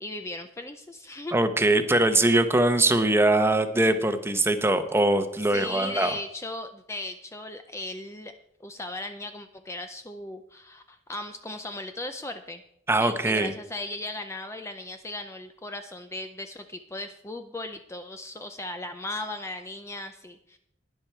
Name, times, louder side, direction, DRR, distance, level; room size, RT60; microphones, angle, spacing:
voice 1, 0.0-1.4 5.5-8.3 8.6-12.6 13.0-20.6, left 2 dB, 15° left, 7 dB, 0.5 m, -37 dB
voice 2, 1.3-6.1 12.9-13.5, right 2 dB, 15° right, 8 dB, 0.9 m, -22 dB
12.0 x 10.5 x 4.5 m, 0.75 s
head